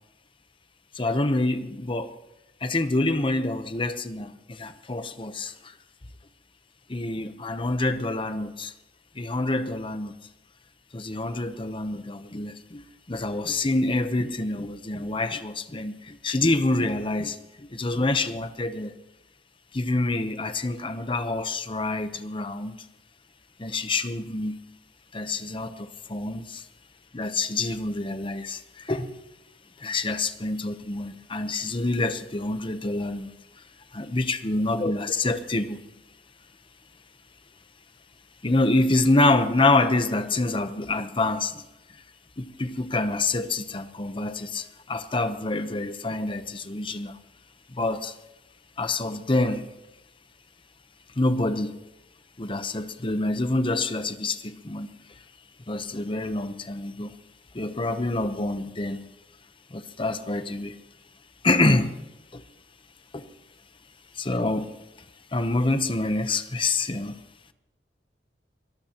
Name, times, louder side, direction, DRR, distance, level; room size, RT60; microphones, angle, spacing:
voice 1, 1.0-2.1 2.6-5.5 6.9-8.7 9.2-10.1 10.9-17.4 17.7-18.9 19.7-22.7 23.6-24.6 25.1-26.6 27.1-28.6 28.9-29.1 29.8-33.3 33.9-35.8 38.4-41.6 42.4-47.1 47.8-48.1 48.8-49.7 51.2-51.8 52.4-54.9 55.7-57.1 57.5-59.0 59.7-60.7 61.4-62.0 62.3-62.4 63.1-63.3 64.2-64.7 65.3-67.2, left 2 dB, 30° left, 0.9 m, -26 dB
23.0 x 18.5 x 3.0 m
head